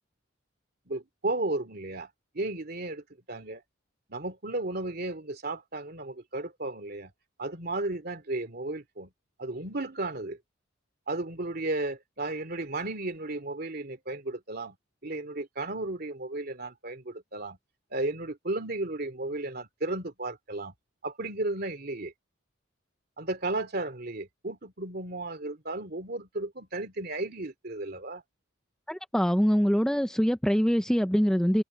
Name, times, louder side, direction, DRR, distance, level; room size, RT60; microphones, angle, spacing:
voice 1, 0.9-2.1 2.3-3.6 4.1-7.1 7.4-9.1 9.4-10.4 11.1-14.8 15.0-17.6 17.9-20.7 21.0-22.1 23.2-28.2, right 2 dB, 50° right, 2.7 m, -34 dB
voice 2, 28.9-31.6, equal, 5° left, 0.6 m, -24 dB
head